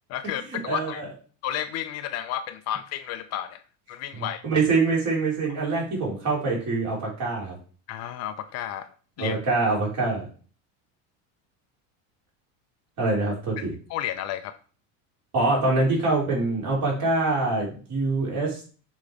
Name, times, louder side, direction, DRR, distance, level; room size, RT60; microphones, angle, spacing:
voice 1, 0.1-1.0 1.4-3.6 3.9-4.4 7.9-8.9 9.2-9.4 13.6-13.7 13.9-14.6, left 11 dB, 45° left, 9 dB, 0.5 m, -32 dB
voice 2, 0.7-1.1 4.2-7.6 9.2-10.3 13.0-13.7 15.3-18.8, right 3 dB, 45° right, -3 dB, 3.4 m, -25 dB
6.7 x 3.1 x 4.8 m, 0.40 s
supercardioid pair, 140°, 39 cm